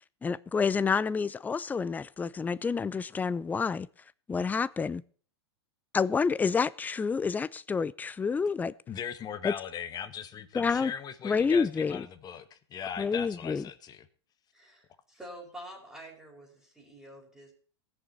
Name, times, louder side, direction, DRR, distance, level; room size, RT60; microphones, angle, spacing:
voice 1, 0.2-3.9 4.3-5.0 5.9-8.7 9.4-9.5 10.5-10.9 11.2-12.1 13.0-13.6, left 5 dB, 10° left, 0.5 m, -28 dB
voice 2, 8.9-14.0, left 8 dB, 30° left, 1.6 m, -39 dB
voice 3, 14.5-17.5, equal, 5° right, 5.4 m, -47 dB
20.5 x 7.1 x 4.4 m
hypercardioid pair, 105°, 14 cm